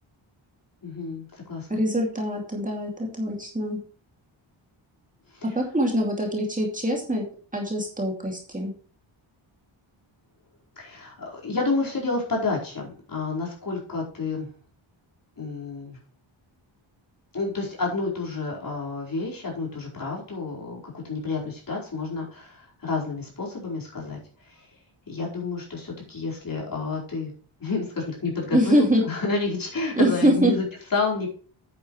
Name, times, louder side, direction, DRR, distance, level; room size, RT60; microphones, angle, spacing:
voice 1, 0.8-1.8 5.3-5.6 10.8-14.5 15.4-16.0 17.3-24.2 24.4-24.7 25.1-27.3 27.6-31.3, left 3 dB, 45° left, -3 dB, 4.9 m, -30 dB
voice 2, 1.7-3.8 5.4-7.2 7.5-8.7 28.5-29.0 30.0-30.5, equal, 15° right, -1 dB, 2.5 m, -24 dB
10.0 x 9.1 x 3.2 m, 0.43 s
wide cardioid pair, 145°, 48 cm